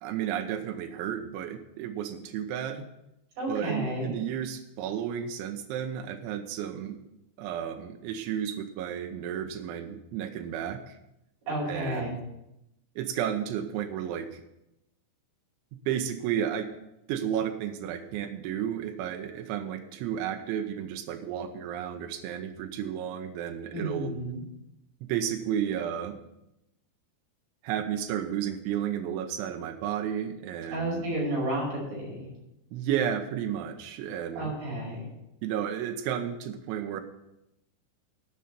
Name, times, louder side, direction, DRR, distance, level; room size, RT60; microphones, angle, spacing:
voice 1, 0.0-2.9 3.5-7.0 7.4-10.9 11.7-12.2 13.0-14.4 15.9-16.7 17.1-24.1 25.0-26.2 27.6-31.0 32.7-34.5 35.4-37.0, right 9 dB, 90° right, 5 dB, 3.2 m, -32 dB
voice 2, 3.4-4.1 11.5-12.1 23.7-24.4 30.7-32.3 34.4-35.1, right 1 dB, 55° right, -3 dB, 7.0 m, -31 dB
14.0 x 5.8 x 6.7 m, 0.86 s
omnidirectional pair, 5.3 m